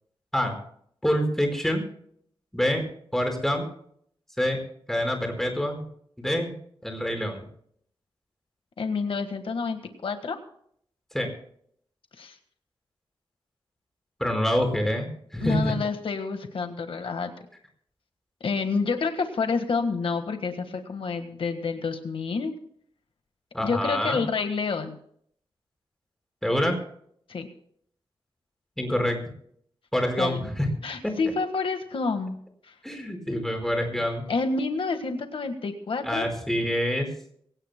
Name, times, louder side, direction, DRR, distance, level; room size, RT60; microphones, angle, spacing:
voice 1, 1.0-1.8 2.5-2.8 3.1-3.6 4.4-4.6 4.9-5.8 6.2-6.5 6.8-7.5 11.1-11.3 14.2-15.7 23.5-24.2 26.4-26.8 28.8-29.2 29.9-30.7 31.0-31.1 32.8-34.2 36.0-37.1, equal, 5° left, 3 dB, 4.7 m, -26 dB
voice 2, 8.8-10.4 12.2-12.4 15.4-17.3 18.4-22.5 23.6-25.0 27.3-27.5 30.2-30.5 30.8-32.4 32.6-32.7 34.3-36.3, left 4 dB, 70° left, 7 dB, 1.5 m, -28 dB
24.0 x 17.5 x 2.2 m, 0.64 s
wide cardioid pair, 130°, 9 cm